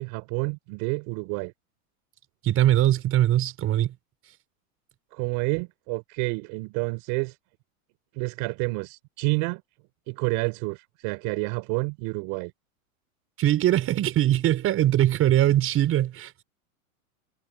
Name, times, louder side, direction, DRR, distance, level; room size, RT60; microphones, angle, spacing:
voice 1, 0.0-1.5 5.1-7.3 8.1-9.6 10.1-12.5, right 29 dB, 50° right, 4.8 m, -29 dB
voice 2, 2.4-3.9 13.4-16.3, right 12 dB, 30° right, 6.1 m, -21 dB
supercardioid pair, 140°, 42 cm